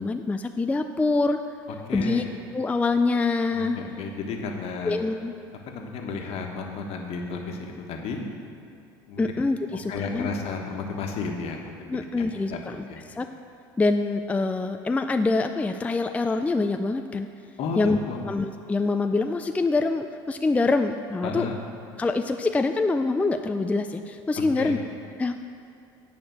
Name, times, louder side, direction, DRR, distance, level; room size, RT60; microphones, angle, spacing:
voice 1, 0.0-1.4 1.9-2.2 2.5-3.8 4.8-5.3 9.2-10.3 11.9-13.3 13.8-17.3 17.8-18.0 18.2-21.5 22.0-24.8 25.2-25.4, left 3 dB, 10° left, 7 dB, 0.4 m, -25 dB
voice 2, 1.9-2.3 3.5-5.0 5.7-8.2 9.1-9.3 9.7-11.6 11.9-12.6 12.9-13.0 17.6-18.2 21.2-21.6 24.6-24.8, left 4 dB, 60° left, 2 dB, 1.4 m, -33 dB
9.3 x 5.1 x 7.9 m, 2.5 s
supercardioid pair, 85°, 12 cm